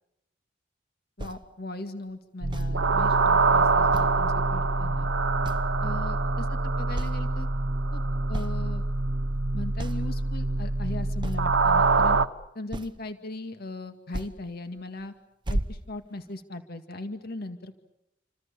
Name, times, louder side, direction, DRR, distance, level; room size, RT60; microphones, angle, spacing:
voice 1, 1.2-5.1 5.8-7.5 7.9-8.0 8.3-8.9 9.5-12.2 12.5-15.1 15.5-17.7, left 2 dB, 55° left, 7 dB, 2.1 m, -38 dB
sound 1, 1.2-1.4 2.5-2.7 3.9-4.3 4.7-4.8 5.4-5.8 6.2-6.6 6.9-7.3 7.9-8.0 8.3-8.6 9.3-9.4 9.8-10.0 11.2-11.5 12.7-13.1 14.1-14.3 14.8-15.0 15.4-16.4, right 1 dB, 25° right, 1.0 m, -33 dB
sound 2, 2.4-12.3, right 3 dB, 75° right, 1.0 m, -25 dB
28.5 x 26.0 x 7.0 m, 0.88 s
head